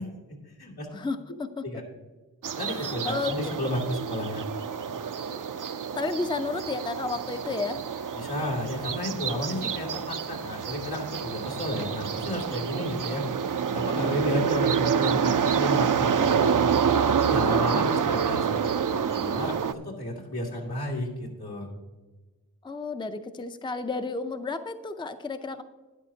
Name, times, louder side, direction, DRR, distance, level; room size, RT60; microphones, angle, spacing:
voice 1, 0.0-0.9 1.6-1.8 2.6-4.4 8.2-13.3 13.7-16.7 17.2-21.7, left 1 dB, 85° left, -4 dB, 2.4 m, -32 dB
voice 2, 0.9-1.7 2.6-3.4 5.3-5.5 5.9-7.8 13.8-14.4 16.2-16.7 17.5-18.2 22.6-25.6, left 3 dB, 15° left, 9 dB, 0.5 m, -33 dB
sound 1, 2.4-19.7, right 7 dB, 60° right, 0.5 m, -27 dB
13.0 x 10.5 x 2.7 m, 1.3 s
wide cardioid pair, 45°, 37 cm